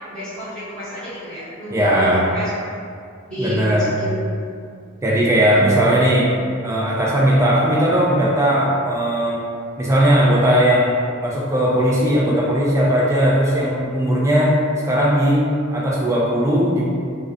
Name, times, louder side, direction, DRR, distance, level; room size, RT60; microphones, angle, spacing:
voice 1, 0.1-2.8 3.3-4.2 5.5-5.8, equal, 5° left, -15 dB, 1.1 m, -28 dB
voice 2, 1.7-2.3 3.4-3.9 5.0-6.3 6.6-9.4 9.8-14.6 14.8-16.9, equal, 15° right, -4 dB, 0.3 m, -18 dB
2.4 x 2.3 x 2.4 m, 2.2 s
head